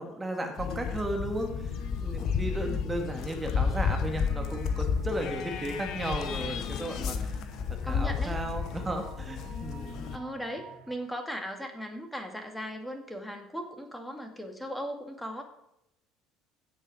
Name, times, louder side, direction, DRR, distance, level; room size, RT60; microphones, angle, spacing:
voice 1, 0.0-7.4 7.7-10.0, right 1 dB, 20° right, 4 dB, 2.1 m, -35 dB
sound 1, 0.6-10.2, left 6 dB, 55° left, 1.0 m, -32 dB
sound 2, 4.2-11.0, right 6 dB, 50° right, 2.5 m, -51 dB
voice 2, 7.8-8.4 10.1-15.4, equal, 5° left, 4 dB, 2.3 m, -38 dB
16.0 x 5.6 x 5.0 m, 0.79 s
figure-of-eight pair, 60°, 0 cm